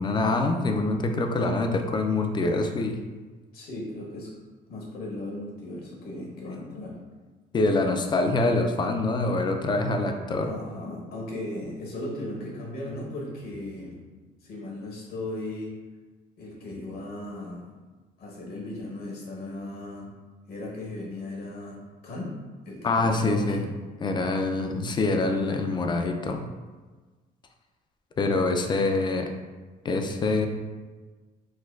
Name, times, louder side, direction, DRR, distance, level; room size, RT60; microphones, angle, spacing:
voice 1, 0.0-3.0 7.5-10.5 22.8-23.7 24.0-26.4 28.2-29.3 29.8-30.5, left 2 dB, 25° left, 4 dB, 0.3 m, -25 dB
voice 2, 3.5-4.3 4.7-7.0 10.5-14.0 14.4-15.7 16.4-17.6 18.2-20.1 20.5-21.8 22.0-22.3 22.6-23.7, left 1 dB, 65° left, -2 dB, 1.0 m, -36 dB
4.2 x 2.3 x 2.3 m, 1.3 s
cardioid pair, 110°, 17 cm